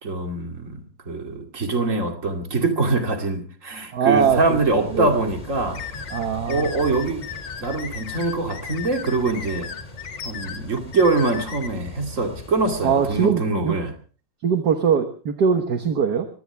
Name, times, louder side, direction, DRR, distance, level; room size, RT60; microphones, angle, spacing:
voice 1, 0.0-5.8 6.5-7.3 7.6-9.7 10.2-13.9, right 3 dB, 40° right, 4 dB, 2.7 m, -24 dB
voice 2, 3.9-5.1 6.1-6.7 12.8-13.7 14.4-16.3, right 7 dB, 60° right, 6 dB, 1.8 m, -21 dB
sound 1, 4.2-13.3, left 1 dB, 20° left, 2.1 m, -40 dB
sound 2, 5.7-11.7, left 8 dB, 70° left, 2.0 m, -36 dB
23.0 x 17.5 x 3.4 m, 0.39 s
omnidirectional pair, 2.1 m